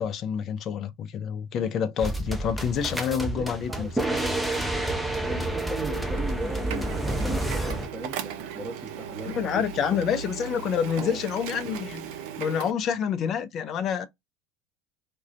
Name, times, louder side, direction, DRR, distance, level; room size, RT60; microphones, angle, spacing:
voice 1, 0.0-3.9 9.3-12.1 12.4-14.1, left 8 dB, 45° left, 0.4 m, -28 dB
sound 1, 2.0-7.9, right 1 dB, ahead, 0.6 m, -29 dB
voice 2, 2.7-4.6 5.2-9.6 9.9-10.1 11.0-11.2, right 2 dB, 25° right, 0.8 m, -38 dB
Printer, 3.6-12.7, right 7 dB, 65° right, 0.4 m, -38 dB
2.4 x 2.2 x 2.3 m
hypercardioid pair, 75°, 0 cm